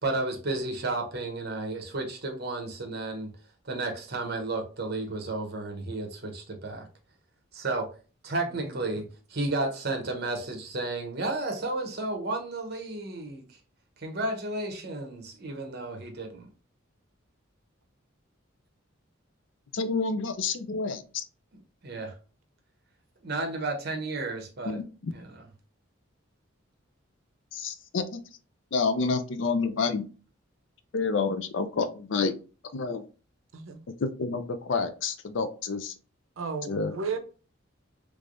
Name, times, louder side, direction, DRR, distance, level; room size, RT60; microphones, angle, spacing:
voice 1, 0.0-3.3 3.6-6.9 7.5-7.9 8.2-9.0 9.3-13.4 14.0-16.5 21.8-22.1 23.2-24.8 25.1-25.4, right 2 dB, 50° right, 0.9 m, -32 dB
voice 2, 19.7-21.2 24.6-25.1 27.5-28.2 28.7-30.1 30.9-32.3 32.7-33.0 34.0-35.9 36.6-37.0, left 4 dB, 60° left, 0.4 m, -29 dB
voice 3, 36.4-37.2, right 5 dB, 75° right, 0.6 m, -33 dB
3.3 x 3.3 x 2.5 m
head